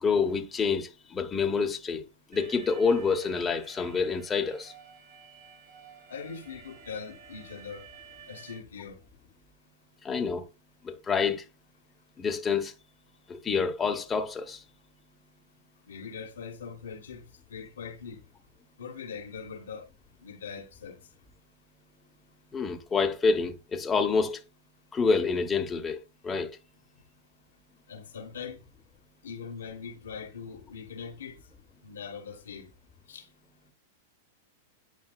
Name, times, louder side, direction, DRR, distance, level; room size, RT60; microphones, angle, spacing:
voice 1, 0.0-2.0 2.3-4.7 10.0-10.4 10.8-11.4 12.2-12.7 13.3-14.6 22.5-24.4 24.9-26.5, left 5 dB, 20° left, 1.2 m, -27 dB
Alarm, 2.3-8.6, right 6 dB, 75° right, 4.1 m, -52 dB
voice 2, 6.1-7.9 8.3-9.0 15.9-17.2 17.5-18.2 18.8-19.9 20.2-21.0 27.9-28.7 29.2-31.4 31.8-32.7 33.1-33.3, left 6 dB, 80° left, 1.5 m, -41 dB
9.6 x 5.3 x 2.4 m
hypercardioid pair, 110°, 0 cm